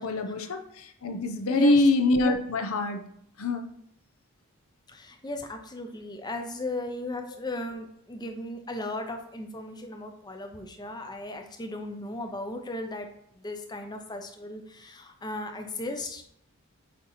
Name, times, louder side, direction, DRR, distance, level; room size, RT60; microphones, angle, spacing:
voice 1, 0.0-3.0 3.4-3.6, left 2 dB, 70° left, 6 dB, 0.6 m, -24 dB
voice 2, 1.5-1.9 4.9-16.2, left 1 dB, 20° left, 5 dB, 0.6 m, -36 dB
8.5 x 2.9 x 4.2 m, 0.72 s
head